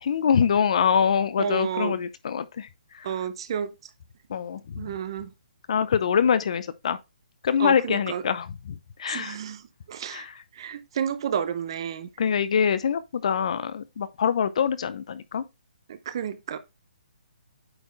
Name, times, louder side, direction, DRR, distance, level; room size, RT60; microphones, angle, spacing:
voice 1, 0.0-2.7 3.0-3.1 4.3-4.6 5.7-7.0 7.4-8.5 9.0-9.4 10.1-10.3 12.2-15.4, left 7 dB, 40° left, 0.6 m, -24 dB
voice 2, 1.4-2.0 3.0-3.7 4.8-5.3 7.6-8.2 9.1-9.6 9.9-10.3 10.6-12.1 15.9-16.6, right 8 dB, 30° right, 0.6 m, -31 dB
8.8 x 4.3 x 3.1 m
hypercardioid pair, 175°, 5 cm